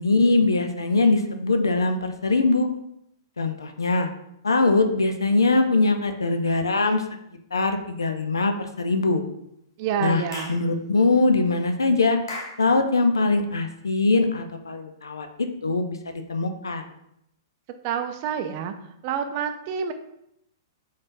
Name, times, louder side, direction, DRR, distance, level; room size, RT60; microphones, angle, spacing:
voice 1, 0.0-2.7 3.4-4.1 4.4-7.0 7.5-9.2 10.0-10.2 10.5-12.2 12.6-16.8, left 3 dB, 90° left, 6 dB, 0.5 m, -22 dB
voice 2, 9.8-10.6 17.8-18.7 19.0-19.9, right 7 dB, 45° right, 8 dB, 0.4 m, -28 dB
Clapping / Chirp tweet, 10.3-10.6 12.3-12.6, left 2 dB, 70° left, 0.9 m, -35 dB
3.9 x 3.6 x 2.6 m, 0.77 s
hypercardioid pair, 115°, 2 cm